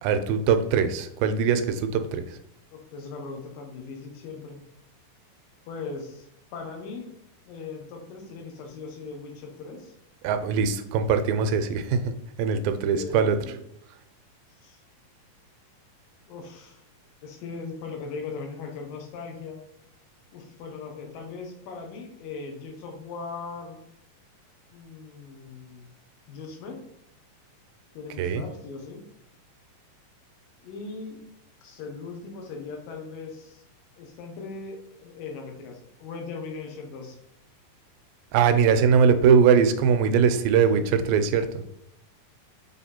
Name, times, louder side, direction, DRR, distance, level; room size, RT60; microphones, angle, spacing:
voice 1, 0.0-2.4 10.2-12.1 12.4-13.4 28.2-28.4 38.3-41.5, right 6 dB, 85° right, 9 dB, 2.3 m, -21 dB
voice 2, 2.7-4.6 5.7-7.1 7.4-9.9 12.9-13.6 14.6-14.8 16.3-16.8 17.2-19.6 20.3-23.8 24.7-25.9 26.3-26.8 27.9-29.0 30.6-31.2 31.6-33.6 34.0-37.2, left 4 dB, 85° left, 3 dB, 2.7 m, -39 dB
6.9 x 3.4 x 4.3 m, 0.75 s
omnidirectional pair, 3.9 m